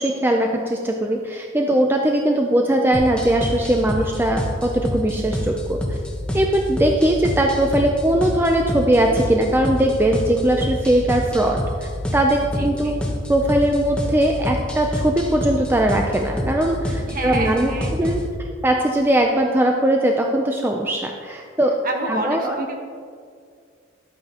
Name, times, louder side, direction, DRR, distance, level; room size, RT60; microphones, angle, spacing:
voice 1, 0.0-5.8 6.3-12.9 13.3-18.2 18.6-21.8 22.1-22.7, right 1 dB, 10° right, 2 dB, 0.5 m, -20 dB
sound 1, 2.9-18.3, left 1 dB, 5° left, 1.0 m, -27 dB
voice 2, 12.5-13.0 17.1-18.1 21.8-22.8, right 2 dB, 45° right, 1 dB, 1.4 m, -28 dB
12.0 x 8.8 x 2.9 m, 2.1 s
head